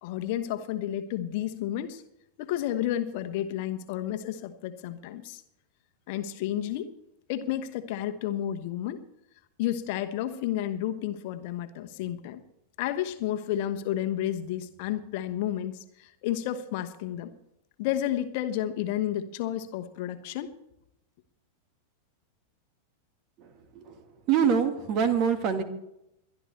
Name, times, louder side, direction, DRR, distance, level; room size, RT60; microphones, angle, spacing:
voice 1, 0.0-2.0 2.4-5.4 6.1-6.9 7.3-9.0 9.6-12.4 12.8-17.3 17.8-20.5, left 12 dB, 50° left, 8 dB, 1.1 m, -31 dB
voice 2, 24.3-25.6, right 7 dB, 40° right, 9 dB, 1.8 m, -24 dB
22.5 x 11.5 x 3.3 m, 0.82 s
figure-of-eight pair, 90°, 0 cm